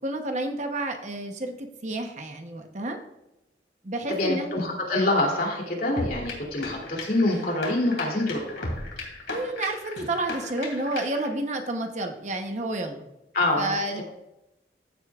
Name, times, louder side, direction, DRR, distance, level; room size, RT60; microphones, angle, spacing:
voice 1, 0.0-3.0 3.8-4.6 9.3-13.1 13.6-14.0, right 2 dB, 40° right, 4 dB, 0.9 m, -30 dB
voice 2, 4.1-8.7 13.3-14.0, left 2 dB, 50° left, -1 dB, 2.8 m, -26 dB
sound 1, 6.0-11.3, left 2 dB, 85° left, 2.7 m, -36 dB
15.0 x 8.2 x 2.4 m, 0.91 s
head